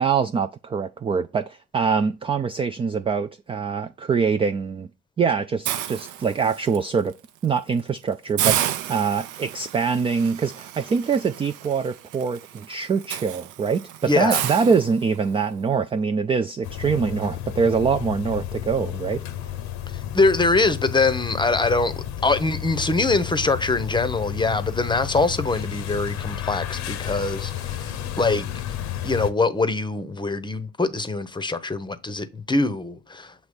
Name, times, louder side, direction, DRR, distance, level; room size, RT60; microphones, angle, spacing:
voice 1, 0.0-4.9 5.2-7.1 7.4-19.5, right 5 dB, 15° right, 0.3 m, -24 dB
Hiss, 5.7-6.8 7.2-7.5 7.8-7.9 8.4-15.4, right 11 dB, 60° right, 0.6 m, -31 dB
voice 2, 14.0-14.4 19.9-28.5 29.0-33.3, left 3 dB, 15° left, 0.7 m, -23 dB
sound 1, 16.6-29.3, left 11 dB, 55° left, 0.8 m, -32 dB
7.0 x 3.1 x 5.1 m
figure-of-eight pair, 50°, 35 cm